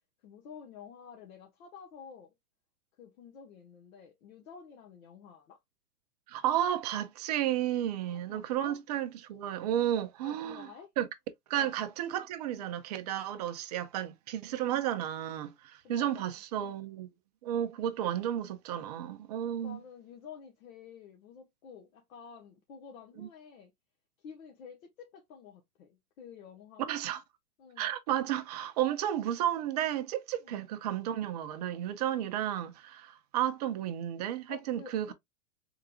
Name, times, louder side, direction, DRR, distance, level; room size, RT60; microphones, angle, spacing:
voice 1, 0.2-2.3 3.0-5.6 8.0-8.8 10.2-10.9 11.5-11.7 15.8-16.4 19.6-23.7 24.2-26.8 27.6-27.9 30.4-30.6 34.5-35.1, left 7 dB, 60° left, 1.1 m, -50 dB
voice 2, 6.3-10.7 11.0-11.1 11.5-17.1 17.4-19.8 23.2-23.3 26.9-27.2 27.8-35.1, right 11 dB, 30° right, 0.4 m, -32 dB
3.8 x 3.6 x 2.2 m
hypercardioid pair, 135°, 46 cm